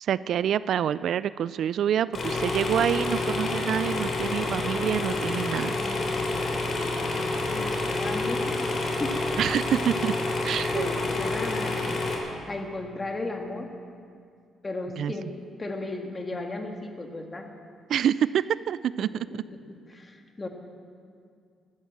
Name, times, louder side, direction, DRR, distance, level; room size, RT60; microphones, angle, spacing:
voice 1, 0.0-5.7 9.4-10.1 10.4-10.9 15.0-15.1 17.9-19.3, right 9 dB, 70° right, 17 dB, 0.3 m, -27 dB
sound 1, 2.1-12.2, left 2 dB, 55° left, 3.2 m, -28 dB
voice 2, 5.7-6.3 6.6-9.2 10.7-11.9 12.5-13.7 14.6-15.3 15.6-17.5 19.0-19.6 19.9-20.5, left 2 dB, 25° left, 4 dB, 1.8 m, -36 dB
13.0 x 12.0 x 7.5 m, 2.3 s
cardioid pair, 90°, 0 cm